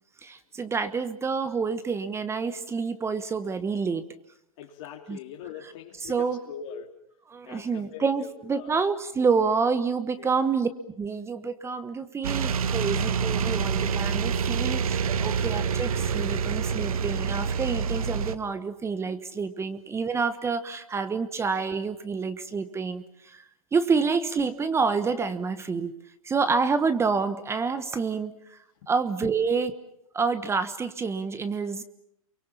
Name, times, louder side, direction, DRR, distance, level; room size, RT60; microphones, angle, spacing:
voice 1, 0.2-4.0 5.1-5.2 6.1-6.4 7.3-10.7 11.0-23.4 23.7-25.9 26.2-28.6 28.9-29.7 30.1-31.8, right 5 dB, 15° right, 12 dB, 1.2 m, -28 dB
voice 2, 4.6-7.0 7.4-8.7 10.2-10.4 15.1-15.3 28.8-28.9, left 8 dB, 55° left, 0 dB, 2.9 m, -42 dB
sound 1, 12.2-18.3, right 7 dB, 75° right, 1.4 m, -27 dB
28.5 x 24.0 x 7.2 m, 0.77 s
hypercardioid pair, 120°, 18 cm